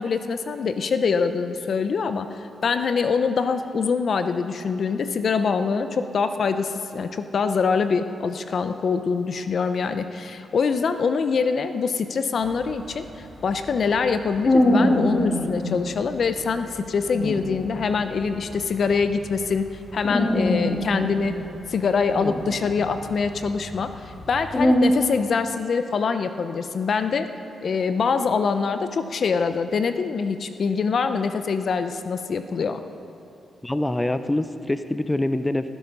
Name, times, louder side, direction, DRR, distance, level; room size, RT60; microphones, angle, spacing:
voice 1, 0.0-13.0 13.4-21.3 21.7-27.3 27.6-32.8, left 5 dB, 60° left, 9 dB, 0.8 m, -24 dB
sound 1, 12.4-15.7 16.1-16.3 16.7-16.8 17.1-19.7 20.0-21.9 22.2-24.8, left 1 dB, 35° left, 3.2 m, -24 dB
voice 2, 33.6-35.7, left 1 dB, 15° left, 11 dB, 0.6 m, -25 dB
19.5 x 11.0 x 5.5 m, 2.6 s
cardioid pair, 60°, 0 cm